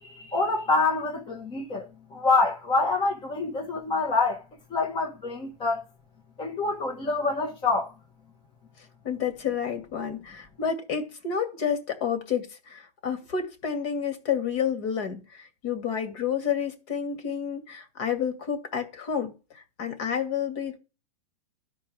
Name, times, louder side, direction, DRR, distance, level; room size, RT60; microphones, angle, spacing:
voice 1, 0.0-4.4 4.7-5.8 6.4-7.9, left 3 dB, 25° left, 1.3 m, -26 dB
voice 2, 9.0-20.8, left 7 dB, 50° left, 2.2 m, -30 dB
13.0 x 4.8 x 3.4 m
hypercardioid pair, 120°, 20 cm